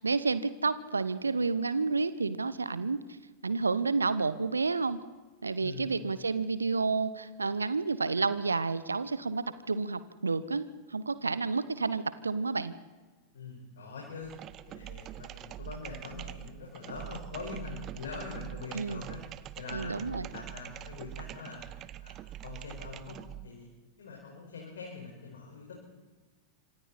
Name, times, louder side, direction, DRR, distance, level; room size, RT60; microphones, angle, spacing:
voice 1, 0.0-3.0 3.4-5.0 5.4-12.7 18.7-19.0 19.7-20.3, right 4 dB, 75° right, 15 dB, 1.0 m, -30 dB
voice 2, 13.3-14.3 14.7-19.2 19.6-21.7 22.0-23.7 24.0-25.9, left 4 dB, 65° left, 0 dB, 5.2 m, -43 dB
sound 1, 14.2-23.5, right 13 dB, 35° right, 0.8 m, -44 dB
26.5 x 26.0 x 4.3 m, 1.3 s
figure-of-eight pair, 90°, 0 cm